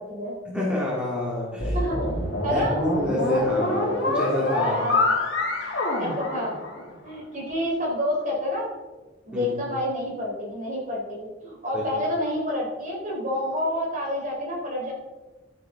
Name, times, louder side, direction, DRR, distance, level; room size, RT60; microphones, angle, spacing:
voice 1, 0.0-0.4 1.7-2.0 2.4-2.8 4.6-5.1 6.0-6.6 7.0-8.7 9.3-14.9, left 1 dB, 40° right, -2 dB, 3.5 m, -28 dB
voice 2, 0.5-1.8 2.5-4.8 9.3-9.5 11.7-11.8, left 1 dB, 5° right, -5 dB, 2.5 m, -27 dB
sound 1, 1.6-7.1, left 2 dB, 65° left, 2.7 m, -26 dB
12.0 x 9.3 x 3.8 m, 1.2 s
head